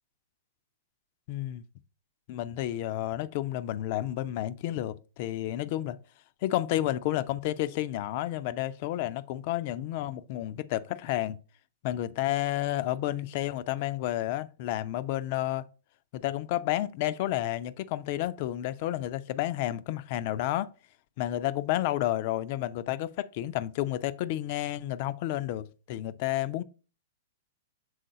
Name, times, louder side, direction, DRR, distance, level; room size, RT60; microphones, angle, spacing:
voice 1, 1.3-1.6 2.3-6.0 6.4-11.4 11.8-15.7 16.1-20.7 21.2-26.6, left 14 dB, 45° left, 0.4 m, -31 dB
6.3 x 3.8 x 3.9 m
figure-of-eight pair, 105°, 0 cm